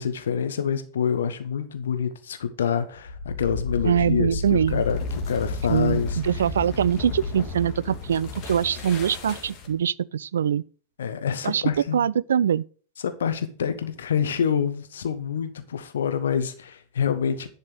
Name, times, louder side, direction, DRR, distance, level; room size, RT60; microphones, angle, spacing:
voice 1, 0.0-5.0 5.3-6.4 11.0-12.1 13.0-17.5, left 7 dB, 65° left, 1.1 m, -27 dB
sound 1, 3.0-9.8, left 3 dB, 35° left, 2.0 m, -32 dB
voice 2, 3.8-4.8 5.7-10.6 11.4-11.6 11.9-12.6, right 8 dB, 65° right, 0.3 m, -23 dB
10.5 x 4.3 x 6.5 m
figure-of-eight pair, 90°, 0 cm